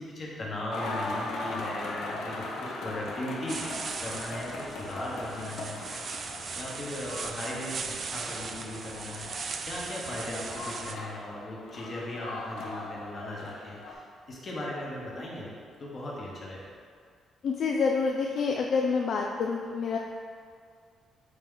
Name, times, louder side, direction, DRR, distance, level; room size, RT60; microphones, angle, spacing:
voice 1, 0.0-3.6 4.0-5.8 6.3-9.3 9.6-15.5 15.8-16.6, left 1 dB, 35° left, -4 dB, 1.3 m, -38 dB
sound 1, 0.7-13.9, left 2 dB, 75° left, 0.8 m, -39 dB
sound 2, 3.5-11.0, right 5 dB, 45° right, 0.3 m, -38 dB
voice 2, 17.4-20.0, left 5 dB, 55° left, 1 dB, 0.3 m, -27 dB
8.4 x 3.0 x 3.8 m, 2.1 s
cardioid pair, 140°, 0 cm